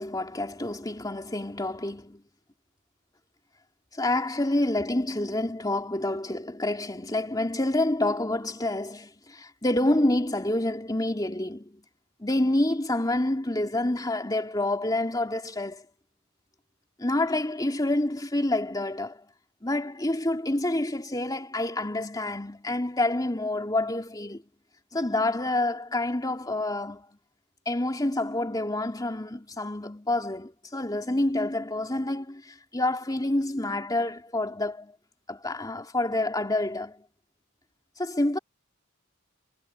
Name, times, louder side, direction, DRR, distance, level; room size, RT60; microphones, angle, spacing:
voice 1, 0.0-2.2 3.9-11.8 12.2-15.8 17.0-19.2 19.6-24.4 24.9-27.1 27.7-34.9 35.3-37.0 38.0-38.4, left 1 dB, 20° left, 2.7 m, -28 dB
head